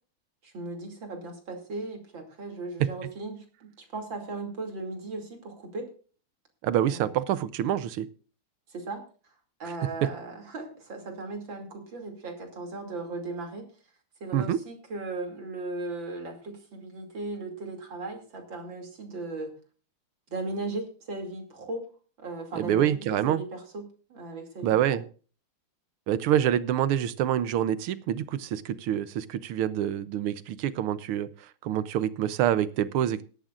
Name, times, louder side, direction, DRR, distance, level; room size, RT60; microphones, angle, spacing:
voice 1, 0.4-5.9 6.8-7.0 8.7-9.0 9.6-13.7 14.2-19.5 20.3-21.9 22.2-25.0, right 2 dB, 60° right, 3 dB, 3.4 m, -37 dB
voice 2, 6.6-8.1 10.0-10.1 14.3-14.6 22.6-23.4 24.6-25.0 26.1-31.3 31.6-33.2, right 11 dB, 85° right, 15 dB, 1.6 m, -26 dB
17.5 x 12.5 x 2.5 m, 0.38 s
omnidirectional pair, 2.4 m